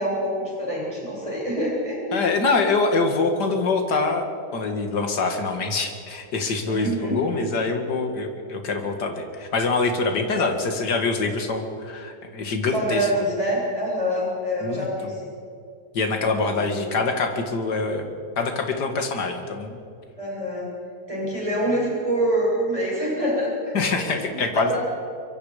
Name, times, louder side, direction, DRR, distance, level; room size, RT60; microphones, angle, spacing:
voice 1, 0.0-2.3 6.7-7.2 10.4-10.5 12.7-15.2 16.2-16.8 20.2-20.7 21.1-24.8, equal, 20° right, -5 dB, 7.6 m, -26 dB
voice 2, 2.1-4.3 4.5-13.1 14.6-14.9 15.9-18.1 18.4-19.8 23.7-24.8, left 3 dB, 70° left, 4 dB, 2.6 m, -24 dB
25.0 x 23.5 x 5.1 m, 2.4 s
omnidirectional pair, 1.9 m